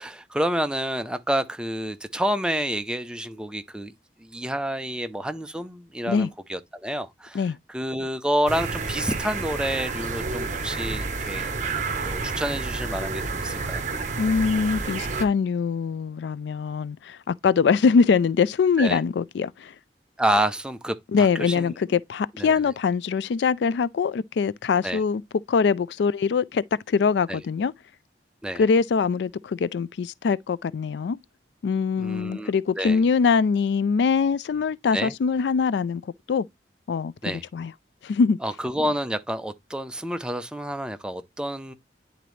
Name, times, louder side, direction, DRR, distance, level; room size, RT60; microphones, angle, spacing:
voice 1, 0.0-3.9 4.2-11.5 12.0-13.8 18.8-19.0 20.2-22.0 22.4-22.7 24.8-25.0 27.3-27.4 28.4-28.6 32.0-33.0 34.9-35.1 37.2-37.4 38.4-41.7, equal, 5° right, 0.5 m, -29 dB
sound 1, 8.5-15.2, right 4 dB, 40° right, 0.9 m, -30 dB
voice 2, 14.2-19.7 21.1-25.2 25.5-27.7 28.6-31.2 31.6-36.0 36.3-36.4 36.9-37.1 37.5-37.7 38.0-38.4, left 5 dB, 70° left, 0.3 m, -23 dB
10.0 x 3.9 x 3.1 m
head